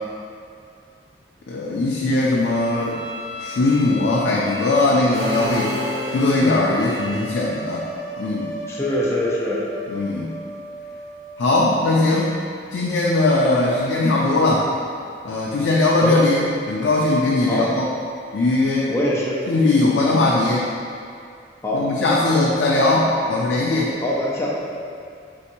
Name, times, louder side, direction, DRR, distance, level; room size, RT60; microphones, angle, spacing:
voice 1, 1.5-3.0 3.4-5.7 6.1-7.9 8.2-8.5 9.9-10.3 11.4-12.4 12.7-14.7 15.2-17.9 18.3-18.9 19.5-20.7 21.7-23.9, left 2 dB, 85° left, -4 dB, 0.4 m, -19 dB
Bowed string instrument, 2.5-7.3, left 2 dB, 75° right, 0.6 m, -35 dB
sound 1, 5.1-6.7, left 1 dB, 55° right, 1.3 m, -29 dB
sound 2, 5.2-11.3, equal, 40° left, 1.3 m, -35 dB
voice 2, 8.7-9.6 16.0-16.2 17.5-17.7 18.9-19.4 21.6-21.9 24.0-24.5, left 1 dB, 15° left, -5 dB, 0.5 m, -23 dB
3.5 x 2.7 x 4.3 m, 2.4 s
head